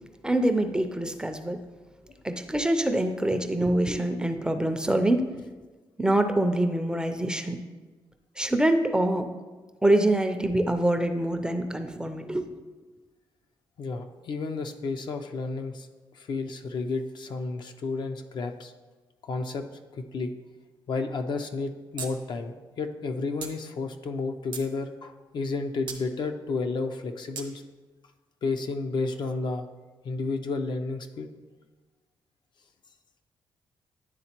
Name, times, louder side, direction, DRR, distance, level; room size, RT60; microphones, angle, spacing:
voice 1, 0.2-1.6 2.2-5.4 6.0-7.6 8.4-9.3 9.8-12.5, right 1 dB, 10° right, 6 dB, 0.4 m, -25 dB
voice 2, 13.8-15.9 16.1-18.7 19.2-19.6 19.9-20.3 20.9-27.6 28.4-29.7 30.0-31.3, left 3 dB, 60° left, 5 dB, 0.5 m, -31 dB
sound 1, 22.0-22.1 22.4-22.5 23.4-23.5 24.2-24.7 25.9-26.0 27.4-27.5, right 5 dB, 60° right, 0.8 m, -37 dB
9.9 x 3.6 x 2.9 m, 1.3 s
cardioid pair, 95°, 9 cm